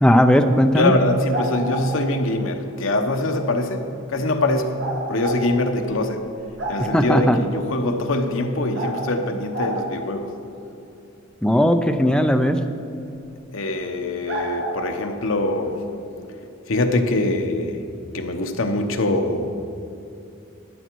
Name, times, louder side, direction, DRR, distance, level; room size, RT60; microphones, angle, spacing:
voice 1, 0.0-0.9 6.9-7.4 11.4-12.6, equal, 5° left, 7 dB, 0.5 m, -17 dB
voice 2, 0.7-4.8 5.1-6.3 6.7-10.3 13.5-15.8 16.7-17.8 18.1-19.5, left 2 dB, 70° left, 5 dB, 0.9 m, -23 dB
sound 1, 1.3-1.9 4.8-5.4 5.9-6.0 6.3-7.1 8.7-9.0 9.5-9.8 13.2-13.3 14.3-14.8, right 1 dB, 60° right, 2.1 m, -28 dB
12.0 x 9.2 x 4.6 m, 2.7 s
head